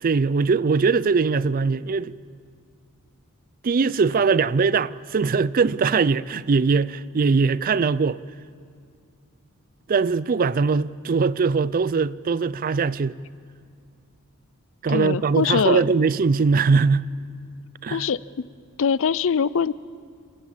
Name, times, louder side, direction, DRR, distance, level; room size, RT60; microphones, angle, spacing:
voice 1, 0.0-2.2 3.6-8.2 9.9-13.2 14.8-17.1 17.8-18.1, right 4 dB, 40° right, 0.4 m, -21 dB
voice 2, 14.9-15.8 17.9-18.2 18.8-19.7, left 6 dB, 65° left, 0.5 m, -22 dB
29.5 x 13.5 x 7.3 m
head